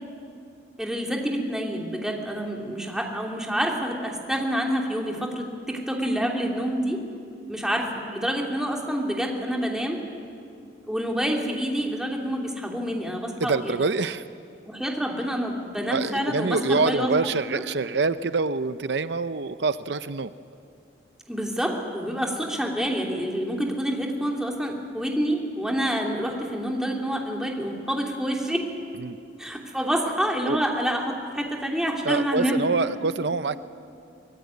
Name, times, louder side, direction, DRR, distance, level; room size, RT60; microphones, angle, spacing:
voice 1, 0.8-7.0 7.5-10.0 10.9-13.7 14.7-17.1 17.5-17.6 21.3-28.7 29.4-32.7, equal, 5° right, 0 dB, 2.9 m, -27 dB
voice 2, 13.4-14.2 15.9-20.3 29.0-29.2 30.5-30.6 32.0-33.6, right 4 dB, 80° right, 12 dB, 0.6 m, -25 dB
24.5 x 20.5 x 9.5 m, 2.4 s
head